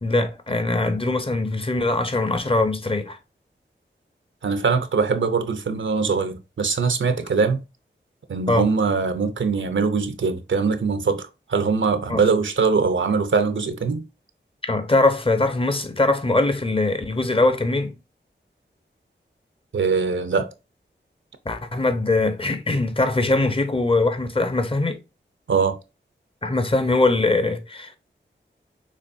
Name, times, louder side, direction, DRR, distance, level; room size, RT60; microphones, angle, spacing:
voice 1, 0.0-3.2 8.5-8.7 12.1-12.2 14.6-17.9 21.4-25.0 26.4-28.0, left 2 dB, 30° left, 0.9 m, -22 dB
voice 2, 4.4-7.6 8.3-14.0 19.7-20.5 25.5-25.8, right 5 dB, 75° right, 0.7 m, -22 dB
6.6 x 3.0 x 2.6 m
wide cardioid pair, 80°, 20 cm